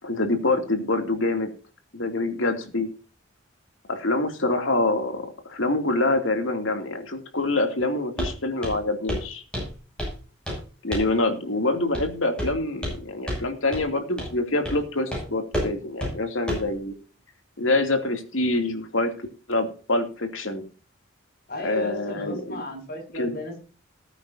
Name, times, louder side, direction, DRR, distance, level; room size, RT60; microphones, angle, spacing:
voice 1, 0.0-1.5 1.9-2.9 3.9-9.4 10.8-16.9 17.6-19.1 19.5-20.6 21.6-22.6 23.1-23.4, left 2 dB, 90° left, 6 dB, 2.7 m, -25 dB
Walk footsteps, 8.2-8.4 8.6-8.8 9.1-9.3 9.5-10.2 10.5-10.6 10.9-11.2 11.9-12.1 12.4-13.0 13.3-13.4 13.7-13.8 14.2-14.3 14.7-14.8 15.1-15.2 15.5-15.7 16.0-16.1 16.5-16.7, equal, 5° left, 7.1 m, -29 dB
voice 2, 21.5-23.6, left 1 dB, 50° left, 1 dB, 6.3 m, -34 dB
20.0 x 9.1 x 2.7 m, 0.36 s
head